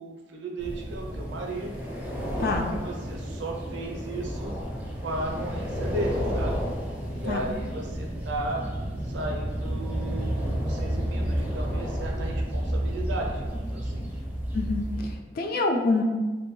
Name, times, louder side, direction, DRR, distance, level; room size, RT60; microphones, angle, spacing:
voice 1, 0.0-1.7 2.3-6.6 7.1-8.6 9.1-14.1, right 2 dB, 75° right, 0 dB, 0.5 m, -35 dB
sound 1, 0.6-15.2, equal, 10° right, 0.4 m, -31 dB
voice 2, 14.5-16.0, left 3 dB, 55° left, 4 dB, 0.3 m, -26 dB
2.6 x 2.1 x 3.0 m, 1.3 s
head